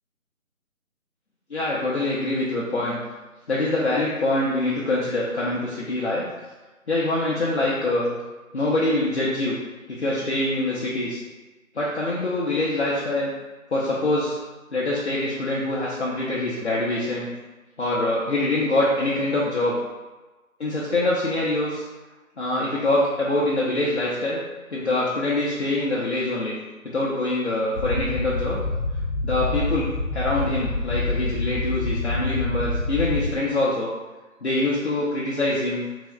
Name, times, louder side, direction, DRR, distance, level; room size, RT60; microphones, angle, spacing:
voice 1, 1.5-3.0 3.5-6.2 6.9-8.2 8.5-9.6 9.9-11.2 11.7-13.3 13.7-14.4 14.7-17.3 17.8-19.8 20.6-21.8 22.4-24.4 24.7-26.6 26.8-28.6 29.2-33.9 34.4-35.8, left 2 dB, 50° left, -6 dB, 0.7 m, -24 dB
sound 1, 27.7-33.3, left 2 dB, 5° left, 0.9 m, -26 dB
3.7 x 3.1 x 3.1 m, 1.2 s
figure-of-eight pair, 155°, 42 cm